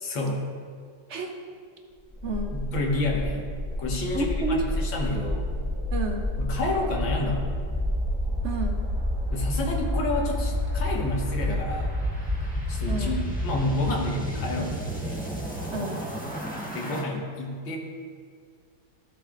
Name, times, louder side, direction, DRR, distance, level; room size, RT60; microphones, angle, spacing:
voice 1, 0.0-0.4 2.5-3.5 3.8-5.5 6.4-7.5 9.3-11.9 12.4-15.2 16.7-17.8, left 2 dB, 75° left, -1 dB, 2.0 m, -30 dB
sound 1, 2.1-17.0, left 1 dB, 5° left, 1.0 m, -29 dB
voice 2, 2.2-2.5 4.1-4.7 5.9-6.2 8.4-8.8 12.9-13.2 15.7-16.0, right 2 dB, 55° right, 3 dB, 0.7 m, -30 dB
15.0 x 6.6 x 2.5 m, 2.1 s
omnidirectional pair, 2.1 m